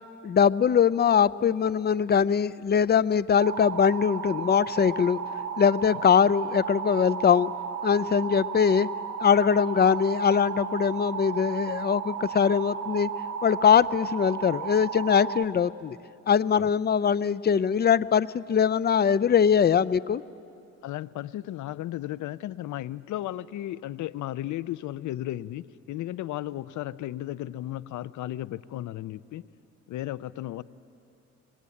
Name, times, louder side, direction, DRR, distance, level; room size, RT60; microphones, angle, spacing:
voice 1, 0.2-5.2 5.6-7.5 7.8-8.9 9.2-13.1 13.4-16.0 16.3-20.2, left 7 dB, 35° left, 18 dB, 0.5 m, -22 dB
sound 1, 3.4-15.4, right 7 dB, 55° right, 1.2 m, -34 dB
voice 2, 20.8-29.4 29.9-30.6, left 14 dB, 75° left, 18 dB, 0.6 m, -34 dB
26.5 x 20.0 x 8.6 m, 2.7 s
cardioid pair, 90°, 30 cm